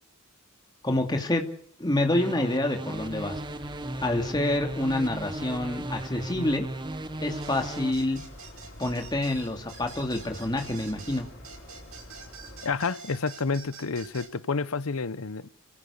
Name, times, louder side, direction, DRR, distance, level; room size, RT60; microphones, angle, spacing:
voice 1, 0.8-1.4 1.8-3.4 4.0-6.7 7.2-8.2 8.8-11.3, left 1 dB, 20° left, 2.6 m, -27 dB
sound 1, 2.1-7.9, right 1 dB, 20° right, 0.9 m, -36 dB
sound 2, 2.9-12.8, left 1 dB, 55° left, 6.1 m, -47 dB
sound 3, 7.4-14.3, right 5 dB, 75° right, 5.7 m, -46 dB
voice 2, 12.6-15.5, left 4 dB, 75° left, 0.8 m, -29 dB
27.0 x 16.0 x 7.0 m
head